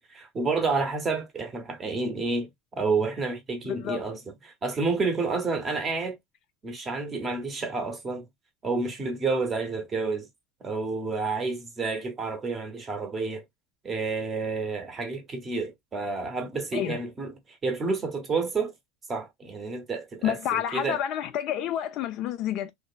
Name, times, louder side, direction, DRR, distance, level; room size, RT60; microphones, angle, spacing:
voice 1, 0.0-2.5 2.8-6.2 6.6-8.2 8.6-10.3 10.6-13.4 13.8-17.3 17.6-18.7 19.1-21.0, right 4 dB, 15° right, 0.7 m, -29 dB
voice 2, 3.6-4.1 16.7-17.0 20.2-22.7, left 10 dB, 40° left, 0.3 m, -29 dB
2.9 x 2.3 x 2.3 m
cardioid pair, 175°, 0 cm